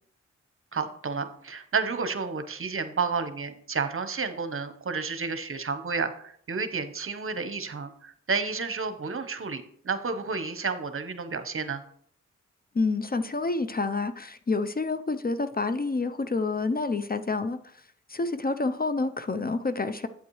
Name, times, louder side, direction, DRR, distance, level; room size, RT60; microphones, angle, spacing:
voice 1, 0.7-11.8, right 4 dB, 45° right, 10 dB, 1.0 m, -31 dB
voice 2, 12.7-17.6 18.1-20.1, left 3 dB, 30° left, 10 dB, 0.6 m, -28 dB
8.5 x 8.3 x 3.1 m, 0.64 s
cardioid pair, 55°, 29 cm